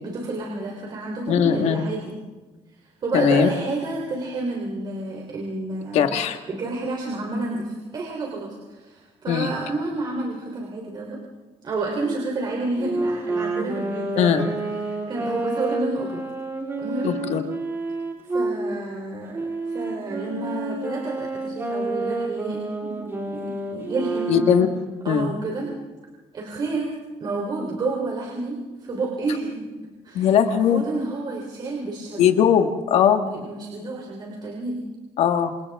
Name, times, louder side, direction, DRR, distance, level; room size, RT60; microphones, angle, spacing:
voice 1, 0.0-2.1 3.0-6.1 6.5-11.2 11.6-14.5 14.8-16.2 16.8-17.1 18.3-24.4 25.0-25.7 26.3-26.9 27.2-29.7 30.0-32.3 33.2-34.8, right 3 dB, 40° right, -1 dB, 3.6 m, -30 dB
voice 2, 1.3-1.8 3.1-3.5 5.9-6.4 9.3-9.5 14.2-14.5 17.0-17.4 24.3-24.7 25.1-25.3 30.1-30.8 32.2-33.2 35.2-35.5, left 8 dB, 75° left, 6 dB, 1.7 m, -19 dB
Wind instrument woodwind instrument, 12.8-18.6 19.3-24.7, right 2 dB, 20° right, 4.0 m, -29 dB
28.5 x 27.0 x 3.7 m, 1.3 s
cardioid pair, 150°, 11 cm